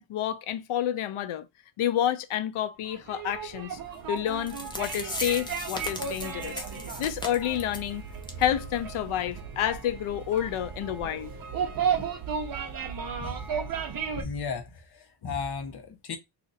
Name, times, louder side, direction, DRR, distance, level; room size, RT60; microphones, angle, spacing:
voice 1, 0.0-1.5 1.8-3.8 4.1-6.6 7.0-8.0 8.4-11.3, left 11 dB, 80° left, 0.6 m, -29 dB
sound 1, 2.8-14.2, right 6 dB, 45° right, 0.7 m, -34 dB
sound 2, 4.2-4.3 4.5-7.9 8.2-8.4 8.7-8.8 9.3-9.4, left 1 dB, 10° left, 0.6 m, -37 dB
voice 2, 14.1-16.2, left 5 dB, 50° left, 0.9 m, -35 dB
2.8 x 2.5 x 3.9 m
wide cardioid pair, 145°, 50 cm